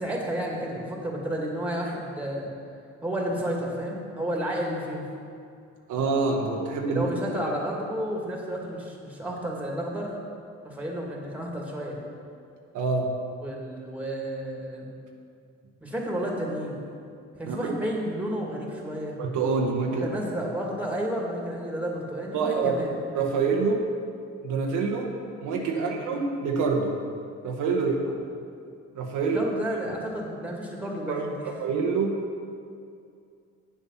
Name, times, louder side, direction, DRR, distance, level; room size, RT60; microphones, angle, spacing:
voice 1, 0.0-2.5 3.0-5.1 6.9-10.1 10.6-12.0 13.4-14.9 15.8-16.8 17.4-19.1 20.0-22.9 25.7-25.9 28.0-28.1 29.3-31.5, equal, 5° right, -2 dB, 2.2 m, -31 dB
voice 2, 5.9-7.0 7.5-7.6 12.7-13.1 17.5-17.7 19.2-20.1 22.3-22.8 23.1-23.9 24.4-27.0 27.4-28.0 28.9-29.4 31.1-32.2, right 4 dB, 85° right, 1 dB, 1.2 m, -26 dB
8.8 x 7.4 x 5.7 m, 2.4 s
cardioid pair, 90°, 30 cm